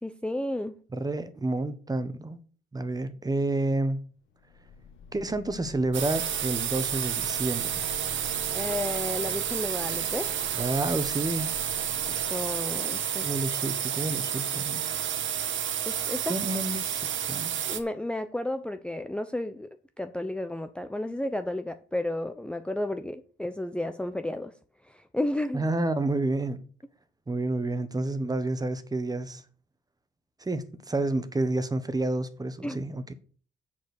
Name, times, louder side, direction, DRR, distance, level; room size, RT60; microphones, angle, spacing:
voice 1, 0.0-0.7 8.5-10.3 12.3-13.2 13.5-13.6 15.9-16.3 17.7-19.7 20.0-24.5 24.8-25.7 32.6-32.8, left 1 dB, 5° left, 0.7 m, -32 dB
voice 2, 0.9-2.4 2.7-4.0 5.1-7.9 10.6-11.5 13.2-14.8 16.3-17.0 17.3-17.5 25.5-26.6 27.3-29.4 30.4-33.1, right 2 dB, 20° right, 1.3 m, -29 dB
sound 1, 4.2-13.6, left 6 dB, 80° left, 1.7 m, -48 dB
sound 2, 5.9-17.8, right 9 dB, 70° right, 1.4 m, -30 dB
7.4 x 6.9 x 6.4 m
cardioid pair, 90°, 20 cm